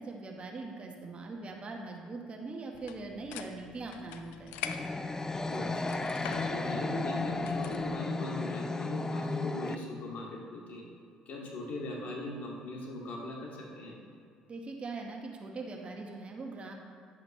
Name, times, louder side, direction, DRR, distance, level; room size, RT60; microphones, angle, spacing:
voice 1, 0.0-4.6 14.5-16.7, right 3 dB, 40° right, 2 dB, 1.3 m, -41 dB
sound 1, 2.7-8.0, left 9 dB, 75° left, 0.5 m, -45 dB
sound 2, 4.6-9.8, left 3 dB, 20° left, 0.5 m, -34 dB
voice 2, 5.5-10.8 11.3-13.9, left 2 dB, 55° left, -2 dB, 2.1 m, -39 dB
10.5 x 8.1 x 3.1 m, 2.3 s
hypercardioid pair, 55°, 3 cm